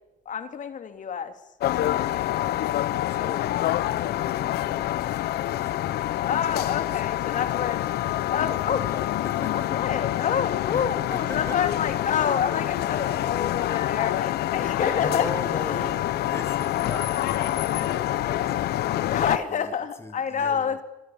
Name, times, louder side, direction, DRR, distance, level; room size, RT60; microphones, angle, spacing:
voice 1, 0.3-1.3 1.8-2.5 3.1-3.2 6.2-9.1 9.5-15.3 15.7-15.9 19.1-20.8, left 7 dB, 50° left, 2.7 m, -28 dB
sound 1, 1.6-19.4, left 14 dB, 70° left, 1.1 m, -26 dB
voice 2, 3.1-6.5 6.9-7.5 8.7-9.9 10.7-11.9 14.6-19.1 19.5-20.8, left 3 dB, 15° left, 1.9 m, -40 dB
28.0 x 23.5 x 7.2 m
cardioid pair, 110°, 17 cm